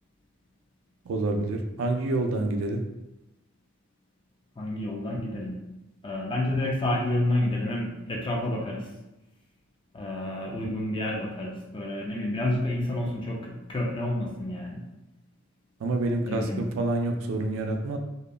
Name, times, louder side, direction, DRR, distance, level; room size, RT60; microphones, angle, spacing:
voice 1, 1.1-2.8 15.8-18.0, right 2 dB, 65° right, 4 dB, 0.3 m, -27 dB
voice 2, 4.6-5.6 6.0-8.9 9.9-14.8 16.2-16.7, left 1 dB, 25° left, -1 dB, 0.4 m, -29 dB
2.7 x 2.2 x 2.3 m, 0.97 s
head